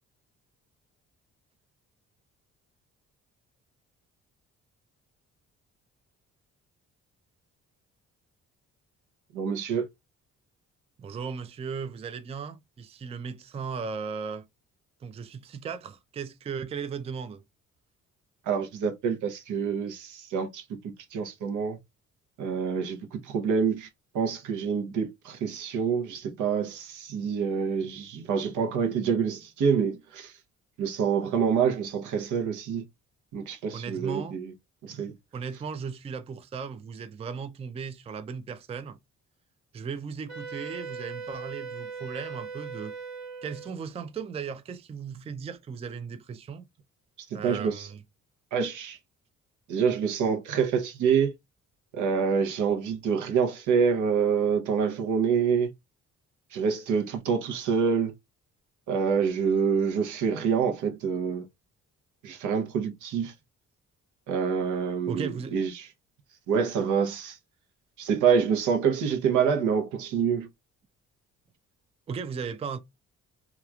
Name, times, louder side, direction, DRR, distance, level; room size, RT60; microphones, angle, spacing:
voice 1, 9.3-9.9 18.5-21.8 22.4-23.9 24.1-30.3 30.8-32.8 33.3-34.5 34.8-35.1 47.3-47.9 48.5-49.0 49.7-51.3 51.9-55.7 56.5-58.1 58.9-61.5 62.2-63.3 64.3-65.9 66.5-67.4 68.0-70.5, right 6 dB, 80° right, 0.8 m, -26 dB
voice 2, 11.0-14.5 15.0-17.4 33.7-34.4 35.3-39.0 39.7-43.0 43.4-46.6 47.3-48.0 65.1-65.6 72.1-72.8, right 6 dB, 20° right, 0.3 m, -36 dB
Wind instrument woodwind instrument, 40.3-43.7, right 5 dB, 65° right, 1.2 m, -39 dB
2.9 x 2.3 x 2.3 m
cardioid pair, 90°, 30 cm